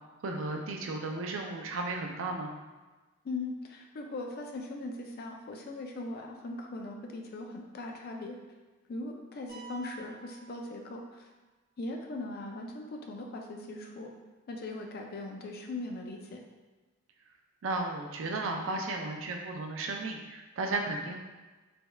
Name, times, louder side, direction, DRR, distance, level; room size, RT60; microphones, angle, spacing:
voice 1, 0.2-2.5 17.6-21.2, right 2 dB, 65° right, 2 dB, 0.4 m, -34 dB
voice 2, 3.2-8.4 8.9-11.3 11.8-14.1 14.5-16.4, left 2 dB, 50° left, 2 dB, 0.4 m, -39 dB
sound 1, 9.5-11.4, right 5 dB, 20° right, 0.8 m, -50 dB
3.3 x 3.1 x 2.2 m, 1.2 s
head